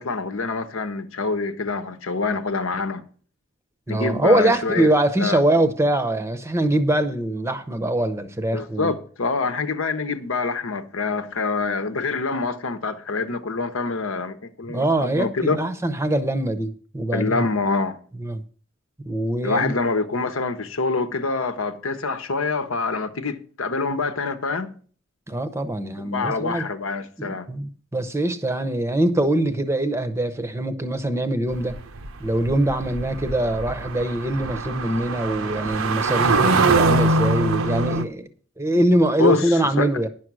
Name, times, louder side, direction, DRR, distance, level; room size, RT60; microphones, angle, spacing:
voice 1, 0.0-3.1 3.9-4.9 5.2-5.4 8.5-15.6 17.1-18.0 19.4-24.8 26.0-27.5 39.2-39.9, left 3 dB, 75° left, 1.0 m, -25 dB
voice 2, 3.9-8.9 14.6-17.4 18.2-18.4 19.0-19.8 25.3-26.6 27.2-31.8 32.2-38.3 38.6-40.1, right 1 dB, 15° right, 0.7 m, -23 dB
sound 1, 31.5-38.0, right 3 dB, 80° right, 0.8 m, -23 dB
10.5 x 6.4 x 6.1 m
head